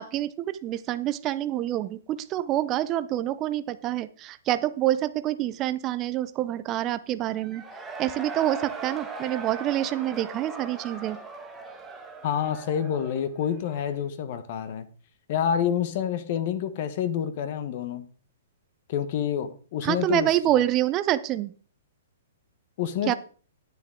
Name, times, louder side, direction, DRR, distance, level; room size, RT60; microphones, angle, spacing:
voice 1, 0.0-7.6 8.0-11.2 19.8-21.5 23.1-23.2, right 13 dB, 20° right, 0.5 m, -27 dB
Cheering / Crowd, 7.4-14.1, right 4 dB, 5° right, 1.1 m, -39 dB
voice 2, 12.2-14.9 15.3-18.1 18.9-20.3 22.8-23.1, left 9 dB, 40° left, 1.0 m, -28 dB
9.8 x 9.4 x 3.7 m
hypercardioid pair, 160°, 0 cm